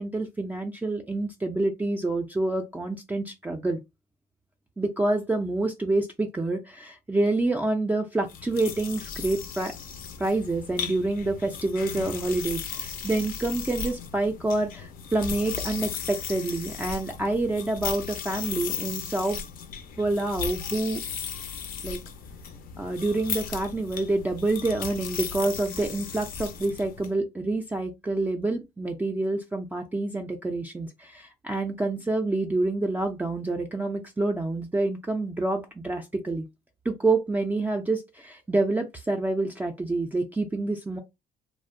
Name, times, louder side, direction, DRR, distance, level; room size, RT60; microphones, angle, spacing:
voice 1, 0.0-3.8 4.8-9.7 10.2-19.4 20.0-21.0 21.8-22.0 22.8-36.5 36.9-41.0, right 2 dB, 10° right, 0.3 m, -27 dB
sound 1, 8.3-27.1, left 7 dB, 60° left, 0.4 m, -36 dB
2.6 x 2.0 x 2.5 m
cardioid pair, 110°, 17 cm